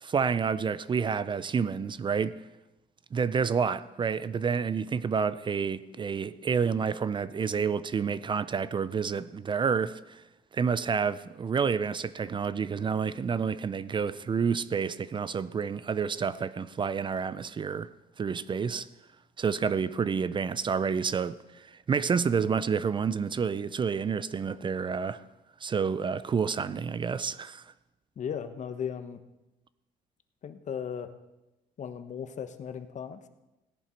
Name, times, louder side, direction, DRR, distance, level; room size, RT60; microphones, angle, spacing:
voice 1, 0.0-2.4 3.1-10.2 10.5-17.9 18.2-18.9 19.4-25.2 25.6-27.6, right 6 dB, 30° right, 0.5 m, -29 dB
voice 2, 28.2-29.2 30.4-31.1 31.8-33.3, left 7 dB, 45° left, 1.1 m, -36 dB
17.0 x 11.0 x 4.5 m
cardioid pair, 110°, 17 cm